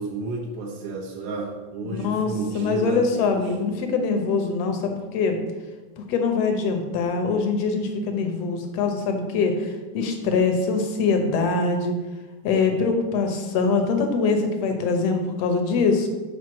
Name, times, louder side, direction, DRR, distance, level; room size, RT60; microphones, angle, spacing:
voice 1, 0.0-3.3, right 2 dB, 60° right, -4 dB, 2.0 m, -32 dB
voice 2, 1.9-5.4 6.1-12.0 12.4-16.1, left 4 dB, 65° left, 4 dB, 1.8 m, -23 dB
6.2 x 5.0 x 6.1 m, 1.3 s
omnidirectional pair, 3.3 m